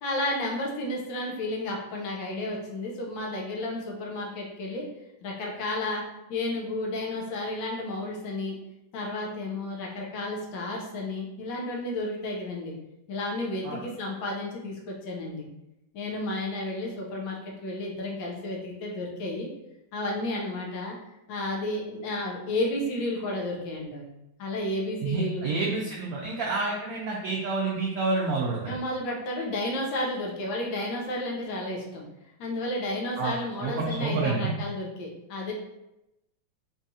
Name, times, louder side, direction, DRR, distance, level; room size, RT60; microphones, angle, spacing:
voice 1, 0.0-4.8 5.2-6.0 6.3-8.6 8.9-12.7 13.1-15.5 15.9-19.5 19.9-21.0 21.3-24.1 24.4-25.5 28.7-32.0 32.4-35.5, left 1 dB, 75° left, -2 dB, 1.4 m, -32 dB
voice 2, 25.0-28.7 33.2-33.3 33.6-34.5, right 3 dB, 85° right, -3 dB, 0.7 m, -28 dB
4.2 x 2.4 x 2.7 m, 0.90 s
omnidirectional pair, 2.2 m